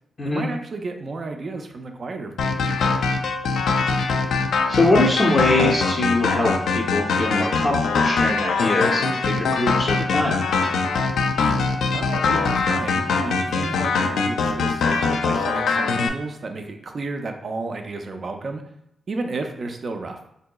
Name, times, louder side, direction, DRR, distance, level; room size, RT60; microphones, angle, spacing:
voice 1, 0.2-3.0 11.9-18.6 19.1-20.2, right 3 dB, 50° right, 5 dB, 0.4 m, -32 dB
sound 1, 2.4-16.1, left 4 dB, 85° left, 0.3 m, -22 dB
voice 2, 4.7-10.4, left 2 dB, 40° left, -5 dB, 0.6 m, -22 dB
3.7 x 2.7 x 2.2 m, 0.80 s
cardioid pair, 85°, 0 cm